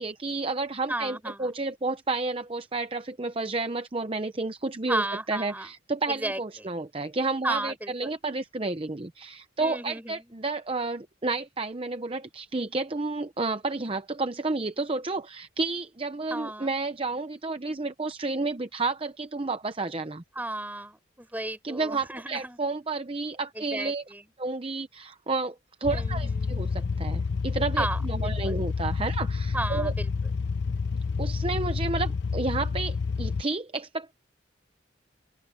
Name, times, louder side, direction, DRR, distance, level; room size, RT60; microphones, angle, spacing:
voice 1, 0.0-20.2 21.6-24.0 24.4-25.5 25.8-29.9 31.2-34.1, right 3 dB, 30° right, 0.7 m, -31 dB
voice 2, 0.9-1.5 4.9-5.7 6.1-6.7 7.4-8.1 9.6-10.2 16.3-16.7 20.3-22.6 23.5-24.2 25.9-26.6 27.8-28.6 29.5-30.1, right 2 dB, 10° right, 4.7 m, -34 dB
sound 1, 25.8-33.4, left 4 dB, 60° left, 0.5 m, -29 dB
open air
head